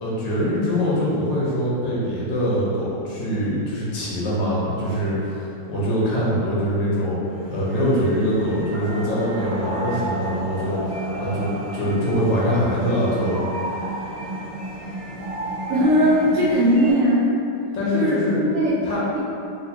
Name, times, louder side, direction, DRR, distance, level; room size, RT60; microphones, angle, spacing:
voice 1, 0.0-7.2 7.5-13.4 17.7-18.4 18.9-19.0, equal, 85° left, -7 dB, 1.6 m, -23 dB
sound 1, 7.2-16.9, right 1 dB, 90° right, 1.9 m, -31 dB
voice 2, 15.7-17.3 17.9-18.8, equal, 70° right, -8 dB, 0.8 m, -19 dB
4.3 x 2.5 x 2.7 m, 2.7 s
omnidirectional pair, 2.0 m